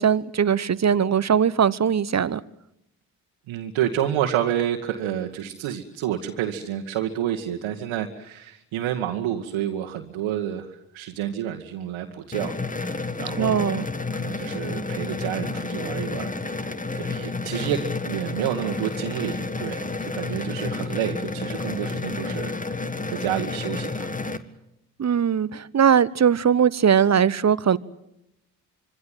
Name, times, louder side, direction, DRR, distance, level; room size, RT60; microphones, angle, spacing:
voice 1, 0.0-2.4 13.4-13.9 25.0-27.8, right 8 dB, 35° right, 19 dB, 1.1 m, -20 dB
voice 2, 3.5-13.8 14.1-24.4, right 11 dB, 65° right, 1 dB, 1.9 m, -29 dB
sound 1, 12.3-24.4, left 3 dB, 15° left, 1.7 m, -30 dB
26.0 x 23.5 x 7.6 m, 0.83 s
hypercardioid pair, 45°, 49 cm